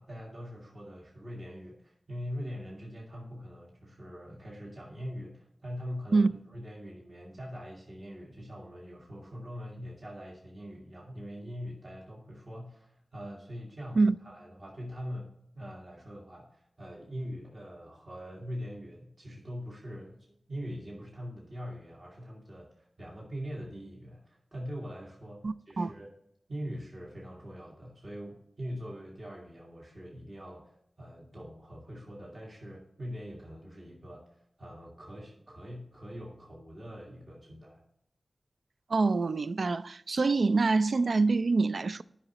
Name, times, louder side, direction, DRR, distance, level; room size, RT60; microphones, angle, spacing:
voice 1, 0.0-26.1 26.5-37.8, equal, 50° right, 1.8 m, -43 dB
voice 2, 25.4-25.9 38.9-42.0, right 3 dB, 75° right, 0.3 m, -25 dB
11.5 x 5.8 x 2.9 m
wide cardioid pair, 80°, 0 cm